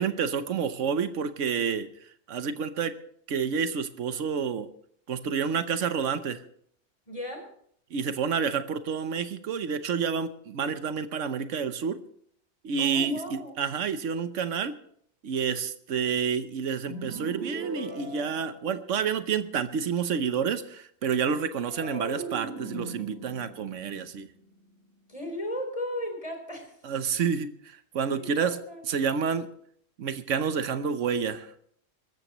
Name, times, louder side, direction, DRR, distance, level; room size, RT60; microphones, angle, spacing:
voice 1, 0.0-1.9 2.3-2.9 3.3-4.7 5.1-6.4 7.9-12.0 12.6-14.7 15.2-24.3 26.8-28.6 28.9-29.5 30.0-31.5, right 6 dB, 85° right, 10 dB, 1.3 m, -29 dB
voice 2, 7.1-7.5 12.8-13.5 25.1-26.8 28.2-28.8, left 1 dB, 30° left, 4 dB, 3.8 m, -36 dB
sound 1, 16.9-19.2 21.7-25.0, right 2 dB, 60° right, 2.1 m, -40 dB
23.5 x 13.5 x 3.1 m, 0.65 s
omnidirectional pair, 1.2 m